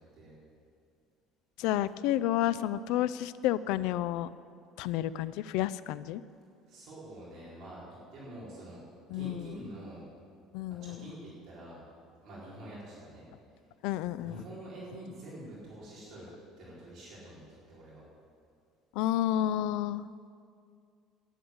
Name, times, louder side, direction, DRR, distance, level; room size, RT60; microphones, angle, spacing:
voice 1, 1.6-4.3 4.8-6.2 9.1-9.5 10.5-11.1 13.8-14.4 18.9-20.1, left 13 dB, 65° left, 16 dB, 0.4 m, -30 dB
voice 2, 6.7-7.8 8.1-8.8 9.1-10.0 10.8-11.8 12.2-13.3 14.2-16.3 16.6-18.1, right 1 dB, 45° right, -7 dB, 4.4 m, -46 dB
12.0 x 10.0 x 7.9 m, 2.3 s
cardioid pair, 175°, 0 cm